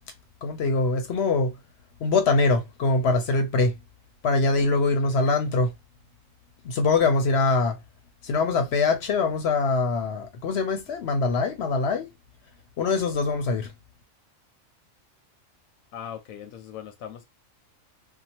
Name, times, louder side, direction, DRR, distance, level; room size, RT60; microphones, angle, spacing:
voice 1, 0.4-1.5 2.0-3.8 4.2-5.7 6.6-7.8 8.2-12.1 12.8-13.7, left 3 dB, 60° left, 0.8 m, -23 dB
voice 2, 15.9-17.2, left 9 dB, 85° left, 1.0 m, -39 dB
2.8 x 2.2 x 2.8 m
omnidirectional pair, 1.4 m